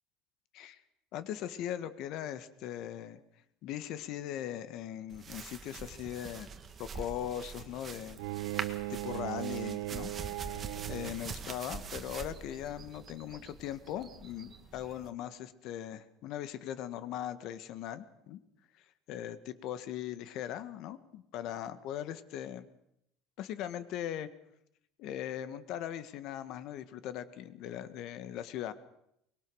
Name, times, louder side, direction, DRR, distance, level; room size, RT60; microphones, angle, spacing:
voice 1, 1.1-3.2 3.6-6.5 6.8-8.2 8.5-10.1 10.9-18.4 19.1-22.7 23.4-24.3 25.0-28.7, left 11 dB, 50° left, 12 dB, 1.6 m, -39 dB
sound 1, 5.1-15.1, right 5 dB, 25° right, 1.6 m, -44 dB
Bowed string instrument, 8.2-11.4, right 18 dB, 85° right, 0.8 m, -38 dB
24.0 x 22.0 x 6.4 m, 0.78 s
cardioid pair, 165°, 0 cm